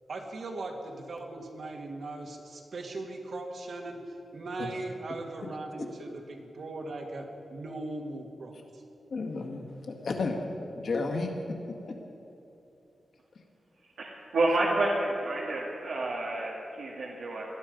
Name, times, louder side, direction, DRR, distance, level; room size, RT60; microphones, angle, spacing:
voice 1, 0.1-8.8, right 2 dB, 60° right, 1 dB, 2.0 m, -39 dB
voice 2, 9.1-10.5 10.7-11.6, left 3 dB, 60° left, 1 dB, 2.0 m, -32 dB
voice 3, 14.0-17.4, right 2 dB, 85° right, -4 dB, 1.9 m, -29 dB
19.0 x 12.0 x 5.3 m, 2.9 s
wide cardioid pair, 125°, 0 cm